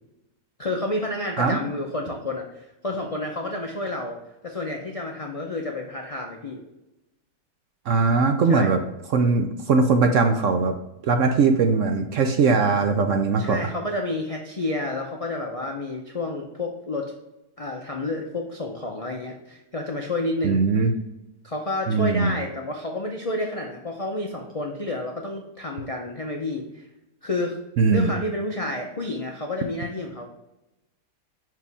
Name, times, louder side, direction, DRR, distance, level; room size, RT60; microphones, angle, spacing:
voice 1, 0.6-4.2 4.4-6.6 8.5-8.7 13.4-17.1 17.6-20.6 21.4-26.8 27.2-27.6 27.9-30.3, left 2 dB, 65° left, 1 dB, 0.3 m, -30 dB
voice 2, 7.9-8.8 9.1-10.7 11.1-13.6 20.4-20.9 21.9-22.3 27.8-28.1, right 4 dB, 65° right, 5 dB, 0.8 m, -20 dB
5.7 x 4.8 x 3.4 m, 0.95 s
omnidirectional pair, 1.7 m